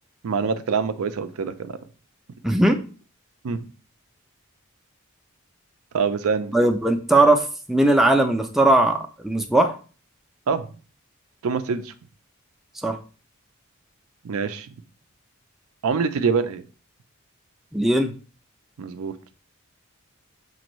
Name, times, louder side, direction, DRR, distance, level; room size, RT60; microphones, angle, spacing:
voice 1, 0.2-1.5 3.4-3.6 5.9-6.5 10.5-10.7 11.4-11.9 14.2-14.7 15.8-16.6 18.8-19.1, right 5 dB, 85° right, 10 dB, 0.4 m, -24 dB
voice 2, 2.4-2.8 6.5-9.8 12.8-13.0 17.7-18.1, right 2 dB, ahead, 4 dB, 0.3 m, -19 dB
6.1 x 2.6 x 3.0 m, 0.38 s
head